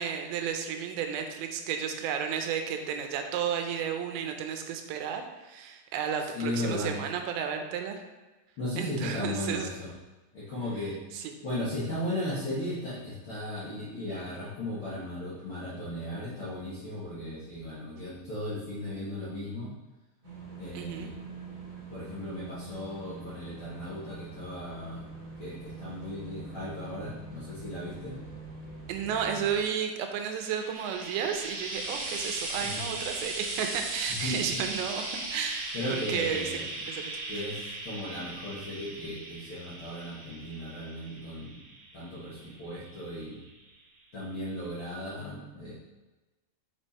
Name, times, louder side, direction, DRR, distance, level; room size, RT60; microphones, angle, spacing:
voice 1, 0.0-8.0 8.8-9.7 11.1-11.3 20.7-21.1 28.9-36.5 36.9-37.5, right 7 dB, 85° right, 5 dB, 3.0 m, -33 dB
voice 2, 6.3-6.9 8.6-9.9 10.3-11.0 11.4-19.7 20.6-21.2 21.9-25.1 25.4-28.1 32.6-32.9 34.2-34.6 35.7-36.6 37.3-41.6 41.9-43.4 44.1-45.7, left 1 dB, 65° left, -9 dB, 1.3 m, -36 dB
sound 1, 20.2-29.6, right 4 dB, 40° right, 2.2 m, -44 dB
Frying (food), 30.2-43.6 44.6-44.7, right 2 dB, 65° right, 3.4 m, -38 dB
6.8 x 5.3 x 4.2 m, 1.1 s
omnidirectional pair, 5.0 m